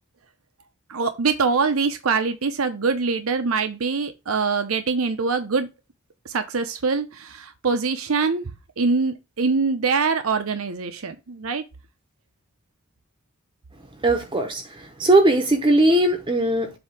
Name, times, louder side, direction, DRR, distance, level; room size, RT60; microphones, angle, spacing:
voice 1, 0.9-5.7 6.2-8.5 8.8-11.6, right 4 dB, 85° right, 0.8 m, -24 dB
voice 2, 14.0-14.6 15.0-16.8, right 1 dB, 20° right, 0.8 m, -19 dB
7.9 x 2.9 x 5.8 m
head